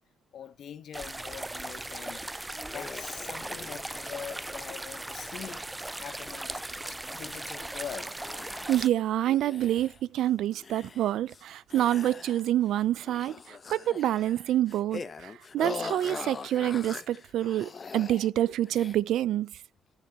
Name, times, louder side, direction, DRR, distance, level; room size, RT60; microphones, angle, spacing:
voice 1, 0.3-8.2, left 8 dB, 65° left, 1.2 m, -43 dB
sound 1, 0.9-8.9, right 2 dB, 15° right, 0.4 m, -38 dB
sound 2, 2.4-6.9 7.2-7.8 8.2-8.9 9.3-10.2 10.5-11.5 11.7-12.7 13.0-18.3 18.7-19.0, left 5 dB, 35° left, 0.8 m, -43 dB
voice 2, 8.7-19.5, right 12 dB, 80° right, 0.4 m, -27 dB
11.5 x 4.0 x 4.6 m
cardioid pair, 90°, 0 cm